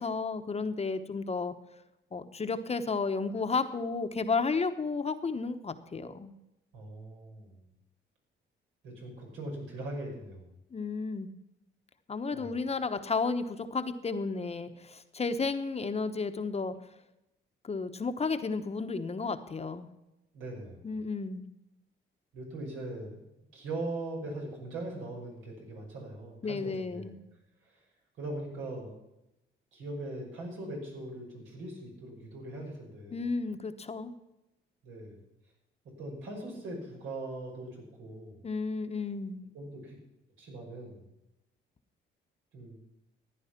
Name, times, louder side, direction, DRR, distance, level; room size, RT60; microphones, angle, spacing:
voice 1, 0.0-1.5 2.1-6.3 10.7-11.3 12.1-16.7 17.6-19.9 20.8-21.5 26.4-27.2 33.1-34.1 38.4-39.4, left 4 dB, 30° left, 8 dB, 1.1 m, -32 dB
voice 2, 6.7-7.6 8.8-10.6 12.3-12.5 20.3-20.9 22.3-23.2 23.5-27.1 27.6-27.8 28.2-29.0 29.7-33.2 34.8-35.2 36.0-38.4 39.5-40.0 40.4-41.1 42.5-42.8, right 2 dB, 85° right, -1 dB, 5.7 m, -40 dB
14.5 x 9.7 x 5.9 m, 0.91 s
cardioid pair, 90°, 20 cm